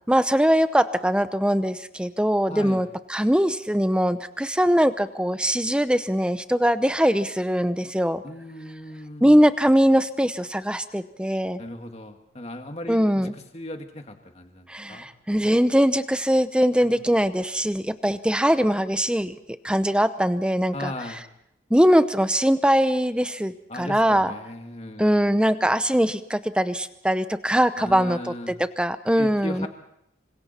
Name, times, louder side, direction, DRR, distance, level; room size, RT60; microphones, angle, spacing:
voice 1, 0.1-8.2 9.2-11.6 12.9-13.3 14.7-19.4 19.6-20.9 21.7-24.3 25.0-29.7, equal, 5° right, 11 dB, 0.7 m, -21 dB
voice 2, 2.5-2.8 8.2-9.4 11.6-15.1 16.8-17.0 20.7-21.2 23.7-25.4 27.8-28.5 29.2-29.7, left 1 dB, 35° left, 5 dB, 2.0 m, -37 dB
27.0 x 25.5 x 4.3 m, 0.75 s
head